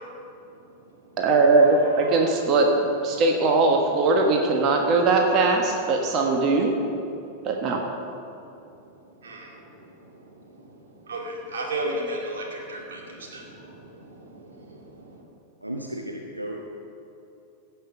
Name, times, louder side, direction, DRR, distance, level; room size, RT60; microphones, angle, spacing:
voice 1, 0.0-1.2 1.5-2.3 3.1-3.2 7.1-7.5 8.3-15.2, right 1 dB, 65° right, -1 dB, 2.5 m, -37 dB
voice 2, 1.2-2.7 3.0-6.7 7.4-7.8, right 3 dB, 35° right, 2 dB, 1.4 m, -20 dB
voice 3, 15.6-16.6, right 1 dB, 85° right, 0 dB, 0.9 m, -34 dB
16.0 x 5.8 x 6.8 m, 2.7 s
figure-of-eight pair, 90°, 0 cm